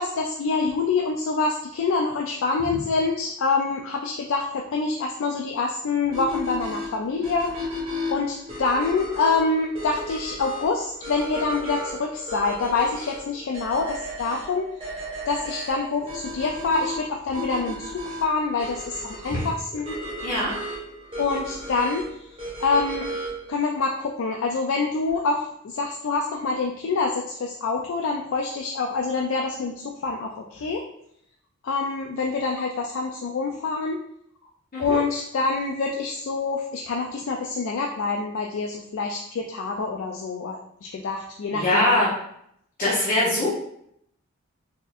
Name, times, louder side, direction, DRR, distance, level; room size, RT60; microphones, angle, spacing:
voice 1, 0.0-7.6 8.1-14.7 15.3-19.9 21.2-22.2 22.6-23.2 23.5-30.8 31.6-34.0 34.8-40.6 40.9-42.1, left 4 dB, 65° left, 1 dB, 0.4 m, -26 dB
sound 1, 6.1-23.5, equal, 25° right, 1.2 m, -35 dB
voice 2, 41.5-42.1 42.8-43.5, left 1 dB, 40° left, -8 dB, 0.9 m, -22 dB
4.1 x 3.5 x 2.4 m, 0.73 s
head